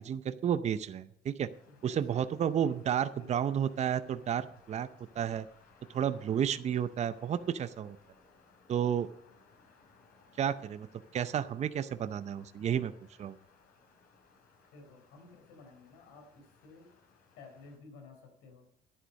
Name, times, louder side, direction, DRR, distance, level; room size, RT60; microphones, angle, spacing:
voice 1, 0.0-1.5 1.8-4.9 5.2-5.5 5.9-8.0 8.7-9.1 10.4-10.9 11.1-12.9 13.2-13.3, right 9 dB, 40° right, 12 dB, 0.6 m, -31 dB
sound 1, 1.5-17.8, left 4 dB, 65° left, 4.6 m, -63 dB
voice 2, 1.7-2.2 2.6-2.8 3.2-3.4 14.7-16.9 17.4-18.6, left 3 dB, 90° left, 3 dB, 4.1 m, -53 dB
11.5 x 10.0 x 5.3 m, 0.75 s
cardioid pair, 110°, 17 cm